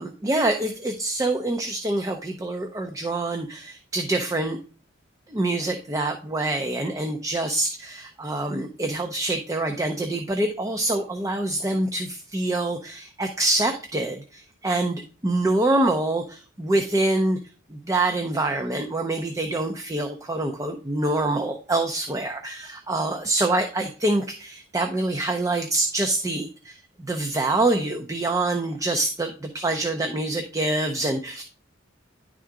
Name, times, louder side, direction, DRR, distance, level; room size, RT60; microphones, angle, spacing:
voice 1, 0.0-4.6 5.3-17.4 17.7-31.4, right 2 dB, 15° right, 5 dB, 0.5 m, -25 dB
10.5 x 3.7 x 4.6 m, 0.37 s
head